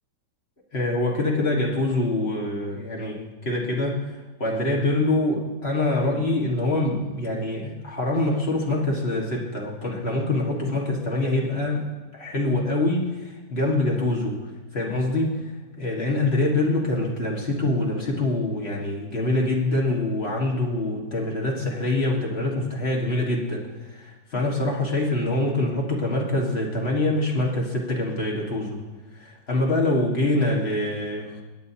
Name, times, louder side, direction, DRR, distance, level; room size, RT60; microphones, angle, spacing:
voice 1, 0.7-15.5 15.8-28.8 29.1-31.4, left 2 dB, 35° left, -2 dB, 1.8 m, -25 dB
23.5 x 9.3 x 2.8 m, 1.2 s
omnidirectional pair, 2.0 m